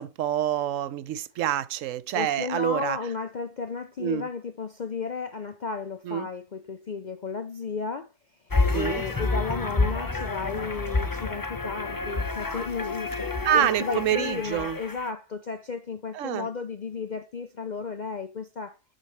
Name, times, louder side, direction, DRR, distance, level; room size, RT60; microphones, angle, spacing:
voice 1, 0.0-3.0 4.0-4.3 6.0-6.3 8.7-9.0 13.4-14.8 16.1-16.5, right 11 dB, 70° right, 0.9 m, -27 dB
voice 2, 2.1-8.1 8.7-13.2 13.5-18.8, left 5 dB, 70° left, 0.4 m, -34 dB
sound 1, 8.5-15.1, left 3 dB, 20° left, 0.5 m, -29 dB
7.6 x 6.3 x 3.1 m
omnidirectional pair, 1.6 m